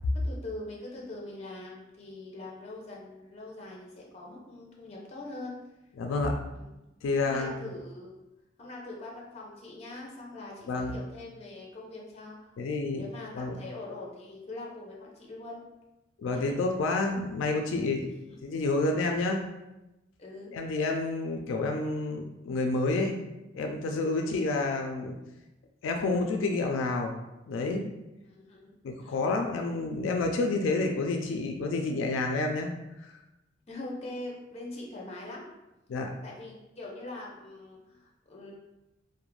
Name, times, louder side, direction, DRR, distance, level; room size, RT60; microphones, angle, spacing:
voice 1, 0.1-5.5 6.5-6.7 7.2-8.1 8.6-12.5 13.0-15.6 16.3-16.5 18.0-18.4 20.2-20.5 24.2-24.3 28.2-28.7 29.0-29.2 33.7-35.5 36.2-38.5, left 2 dB, 35° left, -3 dB, 0.6 m, -43 dB
voice 2, 6.0-6.4 7.0-7.7 10.7-10.9 12.6-13.0 13.3-13.6 16.2-18.1 18.4-19.5 20.5-23.2 23.5-25.1 25.8-27.2 27.5-27.9 28.8-32.7 33.0-33.1 35.9-36.1, left 3 dB, 85° left, 3 dB, 0.3 m, -29 dB
2.4 x 2.1 x 3.0 m, 0.98 s
head